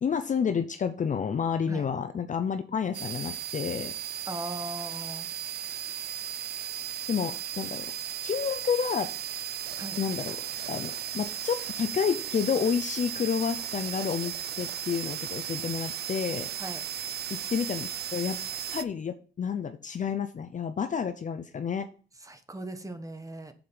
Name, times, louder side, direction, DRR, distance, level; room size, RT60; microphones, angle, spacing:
voice 1, 0.0-3.9 7.1-7.9 8.2-9.1 10.0-10.4 10.7-16.5 17.3-18.4 18.7-21.9, left 7 dB, 40° left, 9 dB, 0.6 m, -30 dB
sound 1, 2.9-18.8, right 10 dB, 55° right, 0.5 m, -36 dB
voice 2, 4.3-5.3 9.8-10.0 16.6-16.8 22.2-23.5, right 1 dB, 15° right, 9 dB, 1.1 m, -38 dB
7.0 x 5.1 x 5.5 m, 0.39 s
cardioid pair, 90°, 20 cm